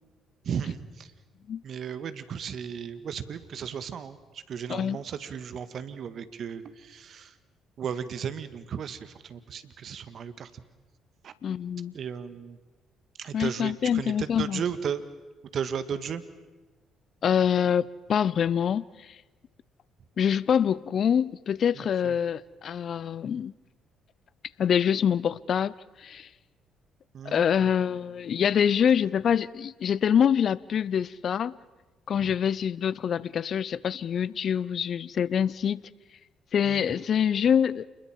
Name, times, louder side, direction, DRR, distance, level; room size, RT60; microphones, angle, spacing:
voice 1, 0.4-1.1 1.6-7.3 7.8-10.6 11.2-11.3 11.9-12.6 13.2-15.0 15.5-16.2 21.8-22.1 27.1-27.4 32.2-32.3 36.6-36.9, right 7 dB, 55° right, 1.7 m, -35 dB
voice 2, 4.7-5.0 11.4-11.9 13.3-14.6 17.2-19.2 20.2-23.5 24.6-25.7 26.0-26.3 27.2-31.5 32.1-35.8 36.5-37.9, left 8 dB, 55° left, 0.7 m, -25 dB
28.0 x 21.5 x 7.5 m
hypercardioid pair, 50°, 0 cm